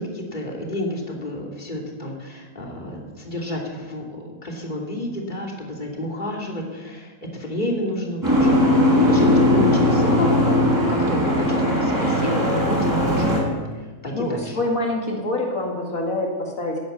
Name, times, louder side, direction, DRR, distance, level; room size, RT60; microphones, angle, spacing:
voice 1, 0.0-11.2 11.5-13.4 14.0-14.6, left 1 dB, 35° left, -1 dB, 3.1 m, -30 dB
Boat Water vehicle, 8.2-13.4, left 1 dB, 15° right, 5.4 m, -19 dB
voice 2, 14.1-16.8, left 2 dB, 75° left, -1 dB, 2.8 m, -26 dB
18.0 x 10.5 x 7.0 m, 1.3 s
omnidirectional pair, 1.5 m